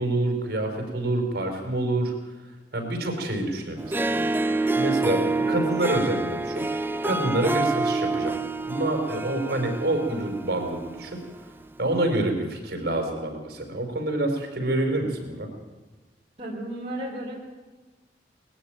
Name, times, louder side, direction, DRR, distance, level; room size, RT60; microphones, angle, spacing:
voice 1, 0.0-2.1 2.7-8.4 8.7-11.2 11.8-15.5, right 1 dB, 60° right, 4 dB, 5.0 m, -27 dB
Harp, 3.8-11.2, right 3 dB, 10° right, 0.6 m, -27 dB
voice 2, 16.4-17.3, right 1 dB, 35° right, -3 dB, 3.4 m, -33 dB
20.5 x 14.5 x 9.2 m, 1.2 s
head